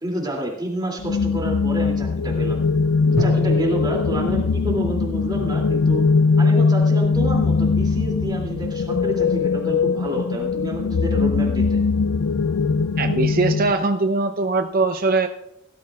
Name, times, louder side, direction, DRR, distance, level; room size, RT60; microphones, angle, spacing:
voice 1, 0.0-2.6 3.0-6.0 6.4-11.8, right 1 dB, 20° right, -2 dB, 2.7 m, -29 dB
sound 1, 1.0-13.7, left 4 dB, 85° left, 0.4 m, -20 dB
Drum, 3.2-6.9, equal, 70° right, 4.0 m, -33 dB
voice 2, 13.0-15.3, right 3 dB, 45° right, 7 dB, 0.7 m, -21 dB
18.5 x 12.5 x 2.4 m, 0.85 s
head